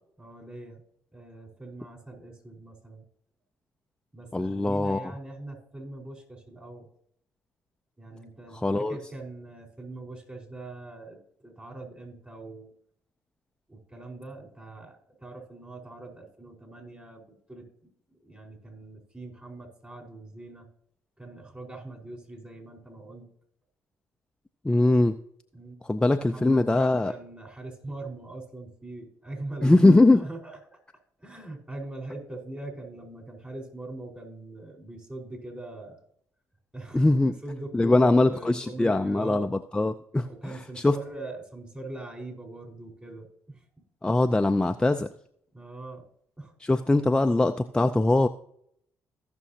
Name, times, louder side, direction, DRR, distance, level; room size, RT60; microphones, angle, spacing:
voice 1, 0.2-0.8 1.1-3.0 4.1-6.9 8.0-11.2 11.4-12.7 13.7-17.9 18.2-20.7 21.2-23.3 25.5-25.8 26.1-30.8 31.2-36.0 36.7-37.2 37.4-39.5 40.2-43.6 45.5-46.0 46.4-46.5, right 2 dB, 20° right, 0 dB, 4.6 m, -41 dB
voice 2, 4.3-5.1 8.5-9.0 24.6-25.2 25.8-27.1 29.6-30.3 36.9-37.3 37.7-40.9 44.0-45.1 46.6-48.3, left 2 dB, 10° left, 7 dB, 0.5 m, -22 dB
16.5 x 6.2 x 2.8 m, 0.68 s
supercardioid pair, 60°, 7 cm